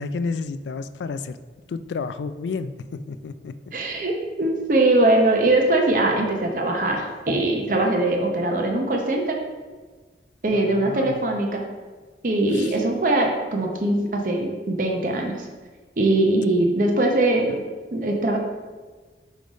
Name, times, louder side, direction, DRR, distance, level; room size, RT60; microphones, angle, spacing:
voice 1, 0.0-1.4 1.7-3.7 10.5-11.2 12.5-12.8, left 4 dB, 80° left, 12 dB, 0.3 m, -31 dB
voice 2, 3.7-9.4 10.4-11.6 12.2-15.5 16.0-17.6 17.9-18.4, right 2 dB, 50° right, 1 dB, 0.7 m, -21 dB
5.1 x 3.9 x 5.0 m, 1.4 s
head